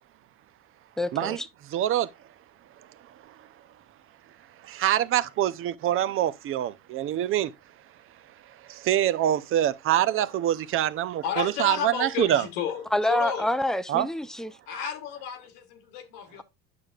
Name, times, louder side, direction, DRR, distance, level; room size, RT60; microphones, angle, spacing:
voice 1, 1.0-1.5 12.9-14.5, left 1 dB, ahead, 0.5 m, -27 dB
voice 2, 1.7-2.1 4.6-7.5 8.7-12.4 13.9-14.1, right 12 dB, 45° right, 0.6 m, -25 dB
voice 3, 11.2-13.5 14.7-16.4, left 8 dB, 80° left, 1.1 m, -32 dB
8.5 x 6.7 x 2.4 m
supercardioid pair, 95°, 30 cm